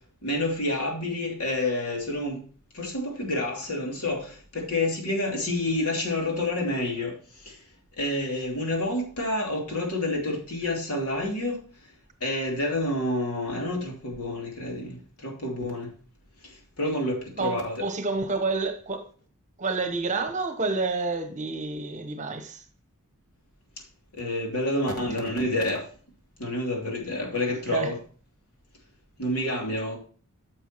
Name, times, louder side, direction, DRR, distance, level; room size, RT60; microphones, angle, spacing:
voice 1, 0.2-2.4 2.7-7.2 7.4-7.6 8.0-11.6 12.2-15.9 16.4-17.8 24.1-25.9 26.4-28.0 29.2-30.0, left 1 dB, 80° left, 2.9 m, -28 dB
voice 2, 17.3-19.1 19.6-22.6 27.7-27.9, right 3 dB, 35° right, 1.0 m, -29 dB
10.0 x 7.0 x 3.0 m
head